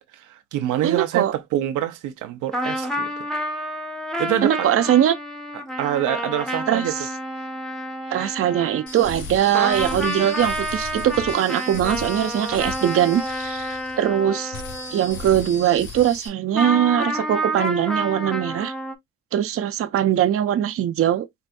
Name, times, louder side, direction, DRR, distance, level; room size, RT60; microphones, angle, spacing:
voice 1, 0.2-3.1 4.2-4.7 5.8-6.9, right 12 dB, 85° right, 0.7 m, -25 dB
voice 2, 0.8-1.3 4.4-5.1 6.7-7.1 8.1-14.6 14.9-18.7 19.3-21.3, right 11 dB, 50° right, 0.5 m, -21 dB
sound 1, 2.5-9.3 9.5-15.5 16.5-18.9, equal, ahead, 0.9 m, -29 dB
sound 2, 8.9-14.2 14.5-16.3, left 3 dB, 80° left, 1.8 m, -36 dB
4.6 x 2.4 x 2.5 m
cardioid pair, 90°, 30 cm